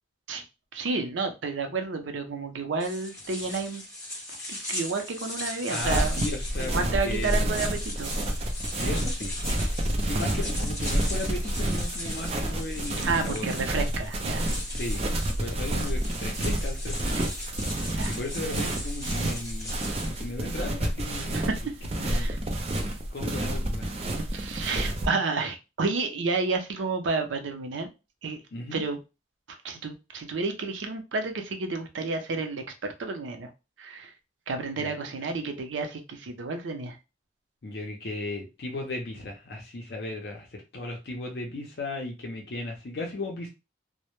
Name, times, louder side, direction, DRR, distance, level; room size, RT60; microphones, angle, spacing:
voice 1, 0.7-3.8 4.5-6.2 6.6-8.1 13.0-14.4 18.0-18.1 21.3-21.7 22.0-22.4 24.2-27.9 28.2-28.4 28.7-29.0 29.6-33.5 33.8-34.1 34.5-36.9, right 4 dB, 90° right, 6 dB, 0.5 m, -30 dB
sound 1, 2.8-20.2, left 1 dB, 15° left, 0.9 m, -39 dB
voice 2, 5.7-7.5 8.7-9.4 10.0-13.5 14.7-15.0 15.4-17.3 18.1-19.8 20.0-21.5 21.8-22.9 23.1-23.9 28.5-28.8 34.8-35.0 37.6-43.5, left 2 dB, 55° left, 1 dB, 0.5 m, -36 dB
sound 2, 5.8-25.1, right 1 dB, 30° right, 0.4 m, -29 dB
2.0 x 2.0 x 2.9 m, 0.27 s
head